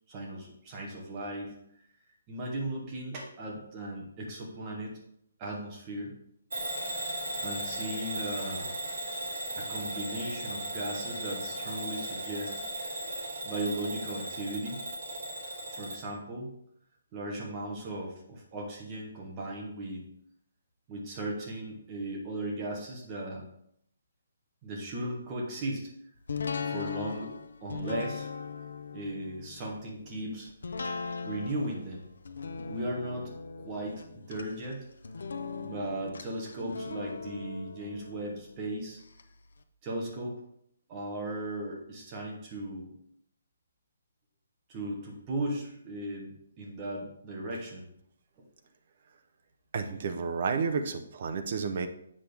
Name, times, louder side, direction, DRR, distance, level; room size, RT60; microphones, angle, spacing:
voice 1, 0.1-1.5 2.3-5.0 5.4-6.1 7.4-8.7 9.6-12.6 13.4-14.8 15.7-16.5 17.1-20.0 20.9-23.4 24.6-25.9 26.7-27.3 27.6-28.3 28.9-30.5 30.8-30.9 31.2-32.1 32.7-33.3 33.6-34.8 35.5-39.0 39.8-40.4 40.9-42.9 44.7-47.9, right 1 dB, 15° right, -1 dB, 1.1 m, -37 dB
Bell / Alarm, 6.5-16.0, right 1 dB, 65° right, 2.6 m, -36 dB
sound 1, 26.3-39.2 39.6-39.7, left 5 dB, 70° left, 0.6 m, -39 dB
voice 2, 49.7-51.9, right 5 dB, 35° right, 7 dB, 0.6 m, -31 dB
7.4 x 6.0 x 3.4 m, 0.71 s
hypercardioid pair, 175°, 0 cm